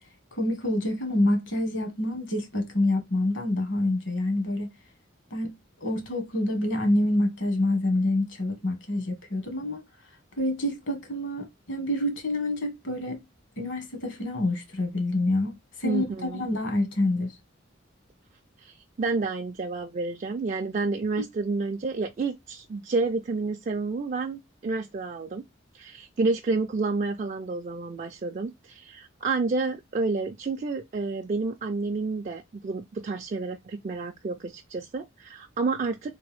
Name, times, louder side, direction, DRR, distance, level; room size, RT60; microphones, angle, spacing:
voice 1, 0.4-4.7 5.3-5.5 5.8-9.8 10.4-13.2 13.6-17.3 21.2-21.3, left 1 dB, 70° left, 1.4 m, -27 dB
voice 2, 15.8-16.4 18.6-25.4 25.7-36.2, right 3 dB, 40° right, 0.3 m, -30 dB
3.4 x 2.6 x 3.4 m
head